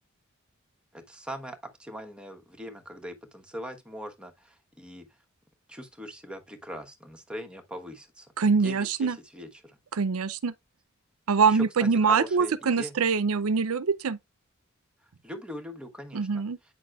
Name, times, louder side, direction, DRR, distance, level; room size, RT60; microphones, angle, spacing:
voice 1, 0.9-5.1 5.7-8.3 8.6-9.8 11.4-12.9 15.2-16.4, equal, 5° right, 1.2 m, -41 dB
voice 2, 8.4-9.2 9.9-10.5 11.3-14.2 16.1-16.6, right 5 dB, 80° right, 0.5 m, -24 dB
8.8 x 6.1 x 2.4 m
head